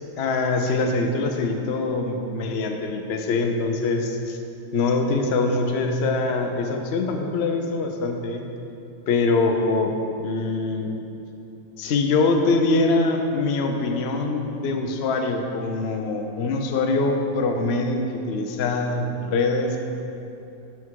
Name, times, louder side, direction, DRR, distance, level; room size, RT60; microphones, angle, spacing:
voice 1, 0.2-4.4 4.7-8.4 9.1-10.0 10.2-10.9 11.8-19.8, left 3 dB, 80° left, 3 dB, 0.5 m, -23 dB
7.5 x 5.8 x 4.7 m, 2.8 s
omnidirectional pair, 2.0 m